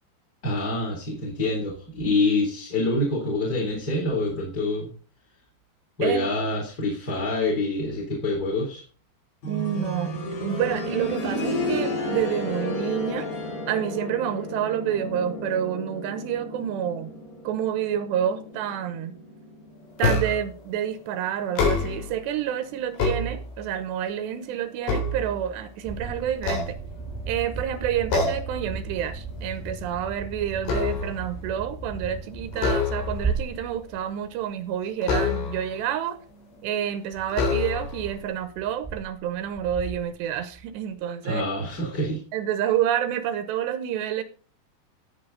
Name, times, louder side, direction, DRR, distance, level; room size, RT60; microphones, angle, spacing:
voice 1, 0.4-4.9 6.0-8.8 41.2-42.2, left 2 dB, 25° left, 3.3 m, -26 dB
voice 2, 6.0-6.3 9.4-10.1 10.4-13.3 13.7-17.2 17.4-19.2 20.0-26.8 27.3-36.2 36.6-41.5 42.3-44.2, right 10 dB, 85° right, 3.2 m, -28 dB
sound 1, 9.4-20.2 21.6-21.7, left 1 dB, 60° left, 7.9 m, -32 dB
sound 2, 20.0-20.6 21.4-22.2 22.7-23.8 24.3-25.8 26.4-27.4 28.1-28.6 29.0-29.2 29.6-31.3 32.5-33.4 35.0-35.8 36.6-36.7 37.3-38.1, left 4 dB, 80° left, 6.2 m, -27 dB
sound 3, 25.8-34.7 35.2-35.6 35.8-35.9 37.1-40.8, right 4 dB, 20° right, 0.6 m, -35 dB
16.0 x 7.7 x 4.0 m
omnidirectional pair, 5.0 m